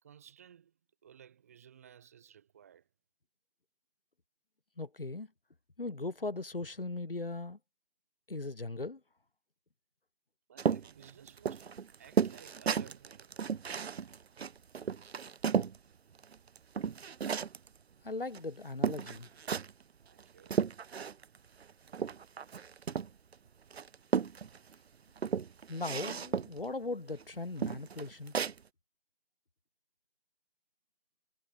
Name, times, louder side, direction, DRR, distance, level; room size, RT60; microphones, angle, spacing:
voice 1, 0.0-2.9 10.5-13.5 20.1-20.6, right 9 dB, 15° right, 3.3 m, -57 dB
voice 2, 4.8-5.3 5.8-7.6 8.3-9.0 18.0-19.3 25.7-28.3, left 3 dB, 60° left, 2.9 m, -38 dB
sound 1, 10.6-15.8 16.2-17.7 18.3-18.4 18.8-19.8 20.2-21.4 21.6-23.3 23.7-24.7 25.2-26.6 27.1-27.2 27.6-28.6, right 6 dB, 80° right, 0.5 m, -34 dB
figure-of-eight pair, 165°, 32 cm